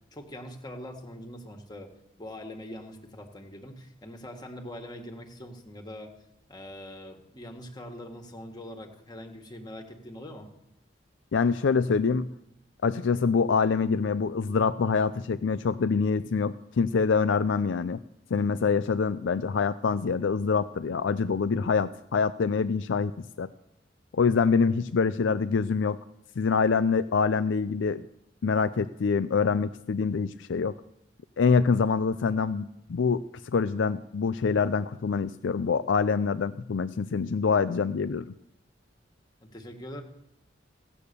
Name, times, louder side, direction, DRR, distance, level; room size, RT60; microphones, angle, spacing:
voice 1, 0.1-1.9 2.2-6.1 6.5-10.5 39.4-40.0, left 1 dB, 25° left, 4 dB, 1.6 m, -43 dB
voice 2, 11.3-12.3 12.8-18.0 18.3-23.1 23.4-23.5 24.1-26.0 26.4-28.0 28.4-30.7 31.4-33.2 33.5-38.3, left 5 dB, 80° left, 13 dB, 0.4 m, -25 dB
16.5 x 8.4 x 6.8 m, 0.82 s
head